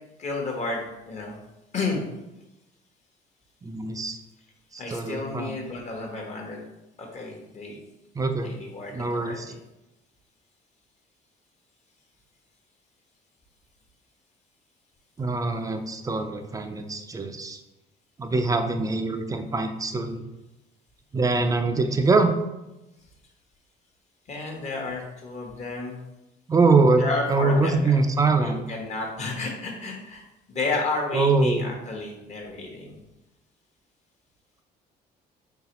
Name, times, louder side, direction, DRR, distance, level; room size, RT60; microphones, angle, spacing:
voice 1, 0.2-1.3 1.7-2.0 4.8-6.6 7.0-7.8 8.4-9.6 24.3-26.0 27.0-28.0 28.4-30.2 30.5-33.0, left 3 dB, 40° left, 0 dB, 1.0 m, -32 dB
voice 2, 3.6-4.2 4.7-5.6 8.2-8.5 8.9-9.5 15.2-17.6 18.2-20.3 21.1-22.3 26.5-28.6 31.1-31.6, right 3 dB, 20° right, 6 dB, 0.4 m, -23 dB
3.9 x 3.3 x 2.9 m, 0.97 s
cardioid pair, 110°, 17 cm